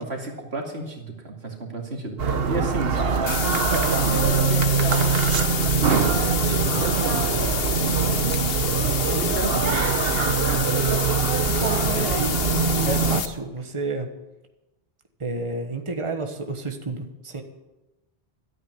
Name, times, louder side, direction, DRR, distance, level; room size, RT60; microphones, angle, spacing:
voice 1, 0.0-5.7 6.0-8.5 9.0-10.7 11.9-12.1, right 2 dB, 85° right, 1 dB, 2.7 m, -33 dB
sound 1, 2.2-13.2, right 5 dB, 70° right, 1.2 m, -23 dB
sound 2, 3.3-13.3, left 7 dB, 70° left, 1.1 m, -28 dB
voice 2, 11.5-14.1 15.2-17.4, right 3 dB, 30° right, 5 dB, 1.4 m, -31 dB
14.0 x 8.9 x 9.5 m, 1.0 s
omnidirectional pair, 1.0 m